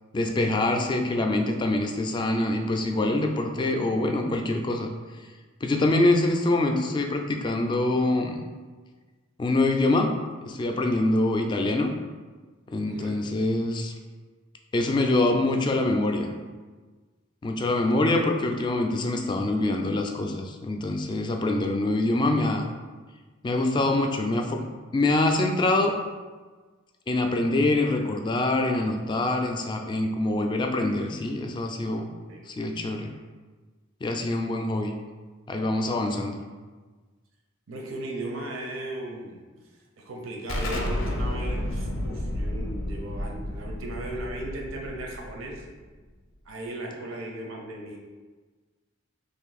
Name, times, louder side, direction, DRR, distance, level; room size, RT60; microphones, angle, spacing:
voice 1, 0.1-4.9 5.6-8.4 9.4-11.9 12.7-13.9 14.7-16.3 17.4-22.6 23.4-24.6 24.9-26.0 27.1-32.0 32.5-33.1 34.0-34.9 35.5-36.4, left 2 dB, 25° left, 3 dB, 0.3 m, -25 dB
voice 2, 37.7-39.4 40.0-45.6 46.5-48.0, right 1 dB, 90° right, 0 dB, 0.6 m, -36 dB
Explosion, 40.5-45.9, left 1 dB, 90° left, 0.5 m, -31 dB
3.1 x 2.6 x 3.9 m, 1.4 s
head